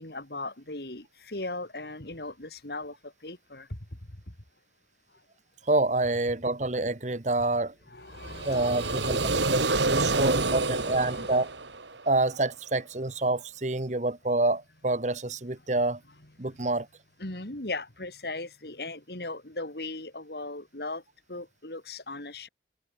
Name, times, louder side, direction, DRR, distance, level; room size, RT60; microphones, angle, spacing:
voice 1, 0.0-3.8 7.9-10.3 10.6-11.4 16.5-16.6 17.2-21.0 21.3-22.5, left 2 dB, 65° left, 3.3 m, -39 dB
voice 2, 5.7-7.7 8.4-11.5 12.1-16.0 16.4-16.9, right 2 dB, 40° right, 1.1 m, -27 dB
sound 1, 8.2-12.2, right 3 dB, 90° right, 2.9 m, -28 dB
head